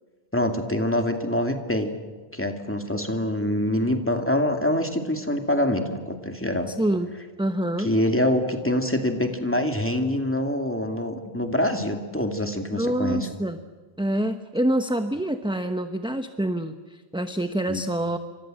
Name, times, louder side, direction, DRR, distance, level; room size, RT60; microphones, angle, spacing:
voice 1, 0.3-1.9 2.3-6.7 7.8-13.3 17.7-17.8, left 1 dB, 10° left, 5 dB, 2.4 m, -25 dB
voice 2, 6.7-7.1 7.4-7.9 12.7-13.6 14.0-18.2, right 1 dB, 5° right, 8 dB, 0.8 m, -26 dB
29.0 x 25.5 x 7.8 m, 1.4 s
omnidirectional pair, 1.1 m